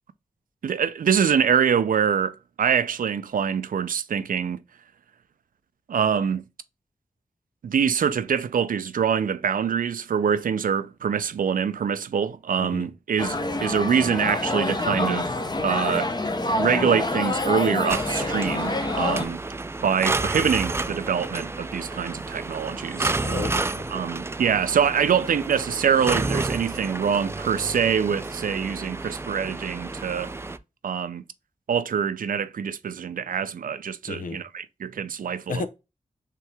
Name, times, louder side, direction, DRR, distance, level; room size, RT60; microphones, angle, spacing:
voice 1, 0.6-4.6 5.9-6.4 7.6-15.3 15.6-16.1 16.6-19.4 19.8-23.3 23.9-30.3 30.8-31.2 31.7-35.6, right 7 dB, 90° right, 0.5 m, -24 dB
sound 1, 13.2-19.2, left 2 dB, 30° left, 0.7 m, -26 dB
sound 2, 17.9-30.6, right 2 dB, 20° right, 0.3 m, -30 dB
voice 2, 23.2-23.9 34.1-34.4 35.5-35.7, left 4 dB, 80° left, 0.7 m, -32 dB
4.6 x 3.3 x 3.3 m
wide cardioid pair, 75°, 14 cm